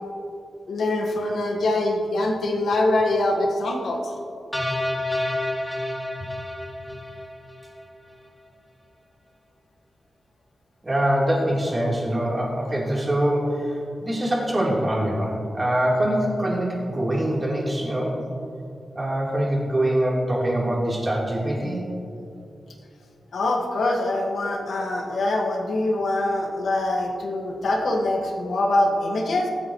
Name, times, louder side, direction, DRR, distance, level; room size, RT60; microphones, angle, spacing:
voice 1, 0.7-4.1 23.3-29.5, left 2 dB, 85° left, 1 dB, 1.7 m, -24 dB
sound 1, 4.5-7.8, left 1 dB, 10° left, 1.4 m, -29 dB
voice 2, 10.8-18.2 18.9-21.8, right 1 dB, 25° right, -5 dB, 3.5 m, -24 dB
24.0 x 8.6 x 3.1 m, 2.6 s
wide cardioid pair, 110°, 0 cm